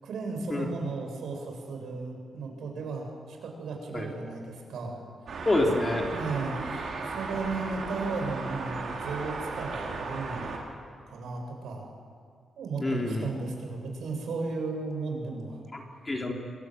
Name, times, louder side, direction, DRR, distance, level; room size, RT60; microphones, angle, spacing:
voice 1, 0.0-5.0 6.1-10.5 11.1-11.8 12.6-15.6, right 3 dB, 80° right, 2 dB, 7.6 m, -35 dB
sound 1, 5.3-10.6, right 3 dB, 55° right, 5.7 m, -35 dB
voice 2, 5.5-6.0 12.8-13.3 15.7-16.3, left 2 dB, 20° left, 1 dB, 3.7 m, -27 dB
27.0 x 23.0 x 9.4 m, 2.2 s
wide cardioid pair, 155°, 0 cm